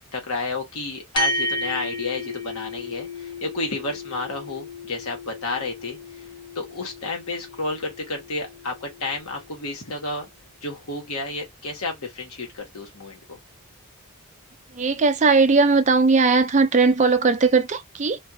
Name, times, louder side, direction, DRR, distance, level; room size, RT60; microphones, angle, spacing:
voice 1, 0.1-6.0 6.5-10.3 10.6-13.4, left 3 dB, 75° left, 1.3 m, -31 dB
sound 1, 1.2-9.8, left 1 dB, 20° left, 1.0 m, -33 dB
voice 2, 14.8-18.2, right 4 dB, 30° right, 0.4 m, -18 dB
2.6 x 2.4 x 2.6 m
head